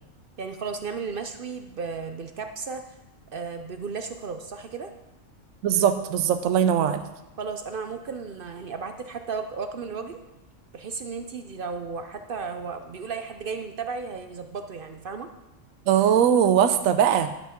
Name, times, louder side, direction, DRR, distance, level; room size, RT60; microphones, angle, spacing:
voice 1, 0.4-2.8 3.3-4.9 7.4-10.2 10.7-15.3, right 5 dB, 55° right, 7 dB, 0.7 m, -34 dB
voice 2, 5.6-7.0 15.9-17.3, right 9 dB, 80° right, 9 dB, 1.0 m, -20 dB
11.5 x 5.8 x 5.8 m, 0.95 s
omnidirectional pair, 1.4 m